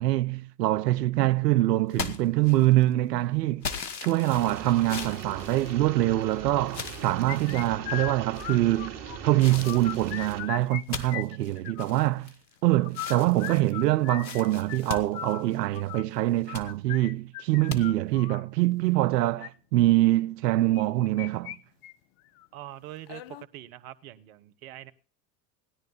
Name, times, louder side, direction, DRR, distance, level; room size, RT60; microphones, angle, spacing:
voice 1, 0.0-3.7 4.0-9.0 9.2-12.3 12.6-21.6, right 16 dB, 75° right, 0.6 m, -24 dB
sound 1, 1.9-2.9 3.6-6.2 6.7-7.7 8.3-8.8 9.4-12.6 12.9-15.9 16.3-16.7 17.7-17.8, left 5 dB, 85° left, 1.3 m, -39 dB
sound 2, 4.3-10.4, right 7 dB, 40° right, 3.0 m, -40 dB
sound 3, 7.3-9.2 9.5-10.8 11.1-12.1 12.8-18.4 19.2-19.5 20.7-21.6 21.8-21.9 22.4-22.5 23.1-23.4, left 13 dB, 45° left, 0.8 m, -38 dB
voice 2, 22.5-23.2 23.5-24.9, right 14 dB, 60° right, 1.1 m, -43 dB
16.5 x 10.5 x 4.0 m
hypercardioid pair, 90°, 50 cm